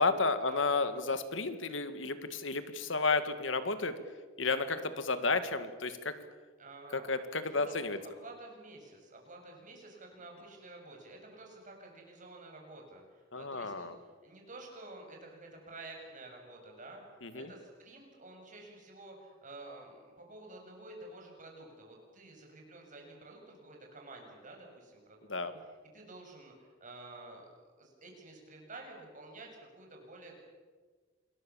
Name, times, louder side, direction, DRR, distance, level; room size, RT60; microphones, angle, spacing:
voice 1, 0.0-4.0 4.4-6.2 6.9-8.0 13.3-14.0 17.2-17.5 25.3-25.5, left 3 dB, 75° left, 11 dB, 1.9 m, -32 dB
voice 2, 6.6-7.2 7.5-7.7 8.2-17.0 17.3-25.3 25.6-30.4, right 2 dB, 40° right, 1 dB, 7.3 m, -51 dB
27.0 x 22.0 x 7.2 m, 1.4 s
head